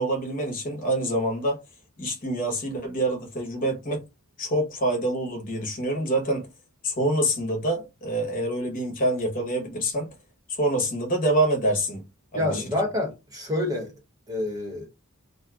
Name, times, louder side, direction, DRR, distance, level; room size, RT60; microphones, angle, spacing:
voice 1, 0.0-1.6 2.0-4.0 4.4-6.5 6.8-10.1 10.5-12.0 12.3-12.6, right 1 dB, 35° left, 0.9 m, -26 dB
voice 2, 12.3-13.9 14.3-14.9, left 2 dB, 15° right, 1.0 m, -27 dB
2.6 x 2.2 x 3.5 m
head